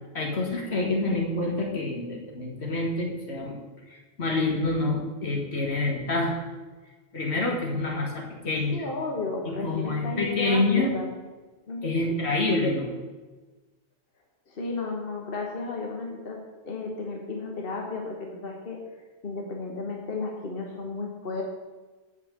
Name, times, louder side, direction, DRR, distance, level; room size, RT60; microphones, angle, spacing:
voice 1, 0.1-3.5 3.9-6.4 7.1-8.8 9.5-10.9 11.8-12.9, left 2 dB, 80° left, 0 dB, 2.0 m, -27 dB
voice 2, 8.7-11.0 11.7-12.2 14.5-16.4 16.6-18.8 19.2-21.4, left 3 dB, 60° left, 0 dB, 1.4 m, -33 dB
8.2 x 5.8 x 8.0 m, 1.3 s
omnidirectional pair, 1.1 m